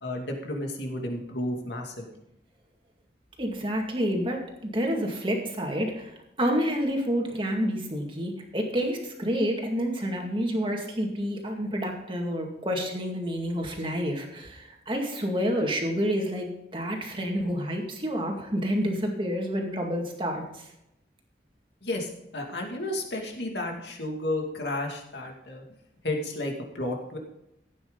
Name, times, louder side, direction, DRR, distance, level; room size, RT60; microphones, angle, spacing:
voice 1, 0.0-2.1 21.8-25.6 26.0-27.2, left 1 dB, 70° left, 1 dB, 2.3 m, -32 dB
voice 2, 3.4-20.6, equal, 30° right, 1 dB, 2.1 m, -29 dB
15.5 x 8.9 x 3.9 m, 0.85 s
head